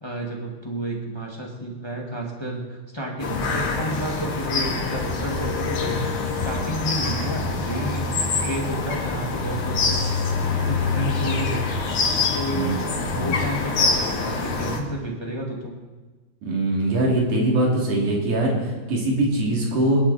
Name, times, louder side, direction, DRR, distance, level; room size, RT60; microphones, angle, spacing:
voice 1, 0.0-5.9 6.4-11.8 12.3-12.7 13.1-15.7, right 1 dB, 15° left, -1 dB, 1.0 m, -31 dB
sound 1, 3.2-14.8, left 4 dB, 65° left, 3.3 m, -25 dB
voice 2, 16.4-20.0, right 1 dB, 65° right, -2 dB, 4.4 m, -22 dB
26.0 x 11.0 x 4.3 m, 1.3 s
omnidirectional pair, 3.8 m